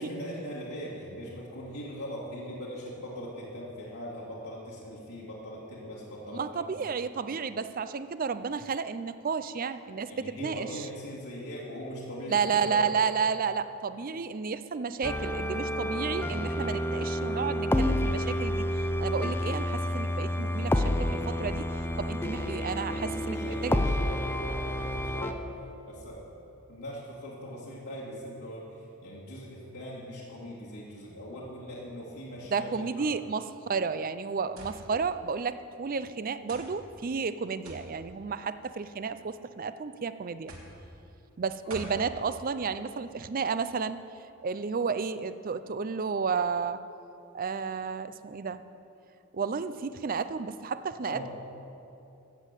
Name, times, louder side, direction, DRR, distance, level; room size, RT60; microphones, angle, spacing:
voice 1, 0.0-6.9 10.1-12.8 22.8-25.4 25.9-26.2 26.7-33.1 41.6-41.8 51.0-51.3, equal, 75° left, -8 dB, 2.4 m, -41 dB
voice 2, 6.3-10.7 12.3-23.8 32.5-40.5 41.4-44.0 44.4-46.8 47.3-48.6 49.3-51.3, right 5 dB, 40° right, 13 dB, 0.4 m, -32 dB
sound 1, 15.0-25.3, left 1 dB, 10° left, 0.5 m, -29 dB
sound 2, 34.6-34.8 35.7-35.8 36.5-36.7 37.6-37.9 38.9-39.3 40.5-40.8 41.7-42.0, right 1 dB, 75° right, 2.6 m, -44 dB
14.5 x 7.5 x 8.2 m, 2.8 s
head